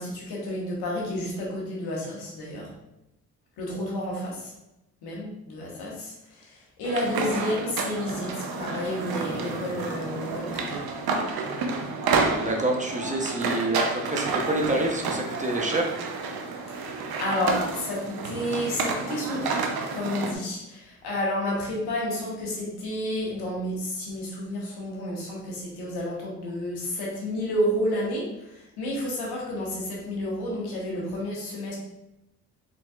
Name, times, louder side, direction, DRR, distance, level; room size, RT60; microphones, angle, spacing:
voice 1, 0.0-2.7 3.6-4.5 5.0-10.8 16.7-19.6 19.9-31.8, left 1 dB, 85° left, -3 dB, 1.4 m, -31 dB
sound 1, 6.8-20.3, right 4 dB, 70° right, 0.8 m, -30 dB
voice 2, 12.4-15.9, right 2 dB, 20° right, 1 dB, 0.9 m, -27 dB
4.2 x 4.1 x 2.4 m, 0.89 s
supercardioid pair, 60°, 38 cm